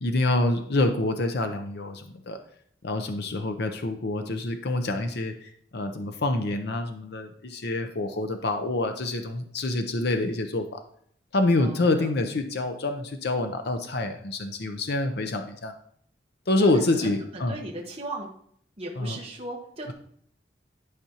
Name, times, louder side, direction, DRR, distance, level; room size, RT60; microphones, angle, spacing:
voice 1, 0.0-2.4 2.8-10.8 11.3-15.7 16.5-17.6 19.0-19.2, left 2 dB, 65° left, 7 dB, 0.7 m, -27 dB
voice 2, 11.5-12.1 16.6-16.7 17.0-18.3 18.8-19.9, right 1 dB, 35° right, -2 dB, 1.1 m, -37 dB
11.0 x 5.1 x 2.9 m, 0.64 s
head